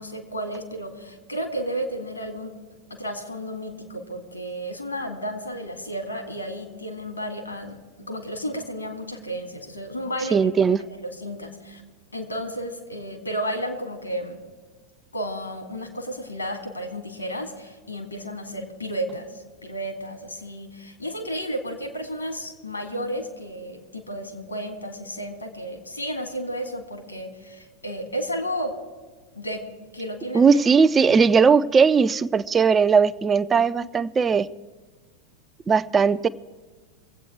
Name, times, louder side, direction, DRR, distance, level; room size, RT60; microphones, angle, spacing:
voice 1, 0.0-2.5 2.9-7.8 8.1-10.5 11.0-11.8 12.1-14.4 15.1-28.7 29.3-29.6 29.9-30.6 31.0-31.4, equal, 85° left, 5 dB, 2.3 m, -32 dB
voice 2, 10.3-10.8 30.3-34.5 35.7-36.3, right 5 dB, 20° right, 14 dB, 0.4 m, -18 dB
23.5 x 8.5 x 4.6 m, 1.4 s
figure-of-eight pair, 90°, 0 cm